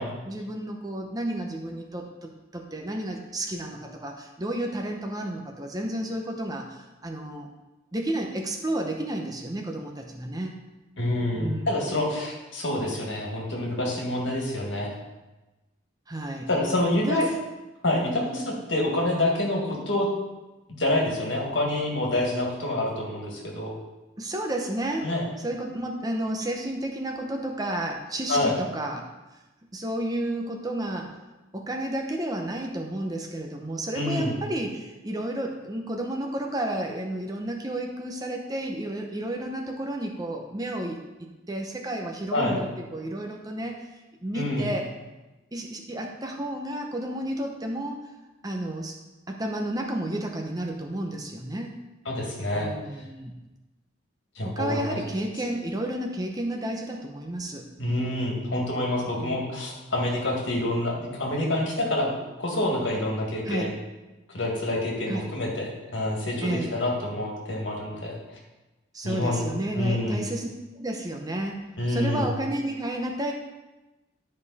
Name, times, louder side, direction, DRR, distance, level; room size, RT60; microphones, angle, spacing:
voice 1, 0.0-7.5 7.9-10.5 11.4-11.9 16.1-16.5 17.0-17.3 24.2-25.1 25.4-29.1 29.7-31.1 31.5-44.9 45.5-48.1 48.4-49.0 49.3-51.8 52.5-53.3 54.4-57.7 59.2-59.6 63.4-63.7 65.1-65.3 66.4-66.8 68.9-70.5 70.7-73.3, right 1 dB, 20° right, 2 dB, 0.7 m, -32 dB
voice 2, 11.0-14.9 16.5-17.2 17.8-20.1 20.8-23.7 25.0-25.2 28.3-28.5 34.0-34.3 42.3-42.6 44.3-44.7 52.1-52.7 54.4-55.0 57.8-62.1 62.4-63.7 64.3-68.2 69.0-69.4 69.7-70.2 71.8-72.3, left 1 dB, 65° left, -2 dB, 2.0 m, -27 dB
10.5 x 5.3 x 4.2 m, 1.1 s
head